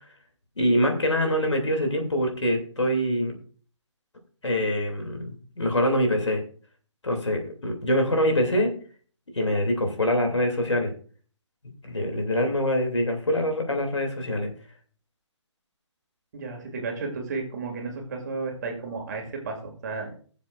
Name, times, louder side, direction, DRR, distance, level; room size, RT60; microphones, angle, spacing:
voice 1, 0.6-3.3 4.4-6.4 7.0-8.7 9.3-10.9 11.8-14.5, equal, 70° left, 3 dB, 3.0 m, -24 dB
voice 2, 16.3-20.1, right 4 dB, 35° right, 2 dB, 2.6 m, -33 dB
20.5 x 7.3 x 2.6 m, 0.43 s
figure-of-eight pair, 140°, 16 cm